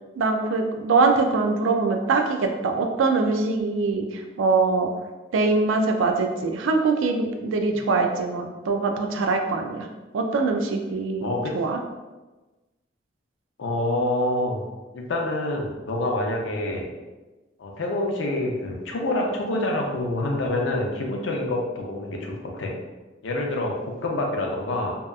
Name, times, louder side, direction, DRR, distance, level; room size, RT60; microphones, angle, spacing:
voice 1, 0.2-4.9 5.3-9.9 10.1-11.3 11.5-11.8, right 3 dB, 80° right, 4 dB, 0.3 m, -23 dB
voice 2, 11.2-11.6 13.6-14.6 14.9-16.9 17.6-22.7 23.2-24.9, left 1 dB, 75° left, 0 dB, 0.5 m, -27 dB
2.7 x 2.3 x 2.3 m, 1.2 s
head